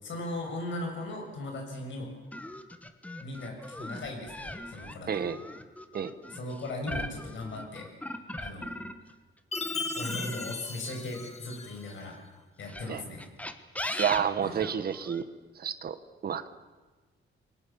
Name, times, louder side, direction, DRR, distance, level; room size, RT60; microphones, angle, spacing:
voice 1, 0.0-2.1 3.2-5.3 6.3-7.9 8.4-8.7 9.9-12.2 12.6-13.2 13.9-14.1 14.4-14.6, left 2 dB, 65° left, 2 dB, 7.1 m, -38 dB
sound 1, 2.3-9.1 9.5-11.9 12.6-15.2, left 1 dB, 5° left, 1.3 m, -39 dB
voice 2, 5.1-5.4 5.9-6.1 12.9-13.0 14.0-15.2 15.6-16.0 16.2-16.5, right 8 dB, 50° right, 11 dB, 1.4 m, -29 dB
Chime, 9.5-12.0, left 4 dB, 30° left, 1.7 m, -38 dB
29.5 x 22.5 x 7.3 m, 1.3 s
wide cardioid pair, 175°, 21 cm